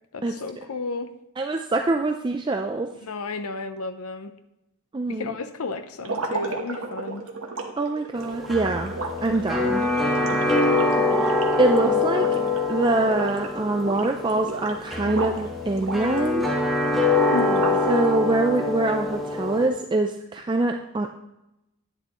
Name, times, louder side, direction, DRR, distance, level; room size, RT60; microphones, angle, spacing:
voice 1, 0.1-1.1 3.0-4.3 5.1-7.3 10.4-10.7 17.3-17.8, left 3 dB, 85° left, 9 dB, 0.7 m, -33 dB
voice 2, 1.4-2.9 4.9-5.3 7.8-8.9 9.2-9.9 11.2-12.4 12.7-16.5 17.9-21.1, right 2 dB, 20° right, 4 dB, 0.3 m, -24 dB
sound 1, 6.0-12.7 13.0-13.5 13.8-15.4 15.8-18.0, right 3 dB, 75° right, 1.1 m, -34 dB
sound 2, 8.1-19.7, left 3 dB, ahead, 1.3 m, -24 dB
10.5 x 9.0 x 3.0 m, 0.90 s
head